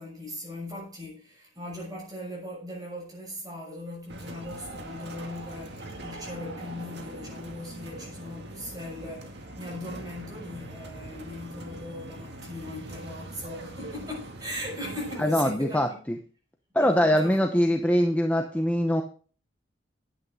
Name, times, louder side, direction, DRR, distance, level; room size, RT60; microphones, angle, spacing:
voice 1, 0.0-16.0 16.8-17.8, left 1 dB, 20° right, 6.7 m, -39 dB
sound 1, 4.1-15.2, right 1 dB, 60° right, 2.1 m, -42 dB
voice 2, 15.2-16.2 16.7-19.0, equal, 10° left, 0.9 m, -23 dB
11.0 x 8.7 x 4.9 m
head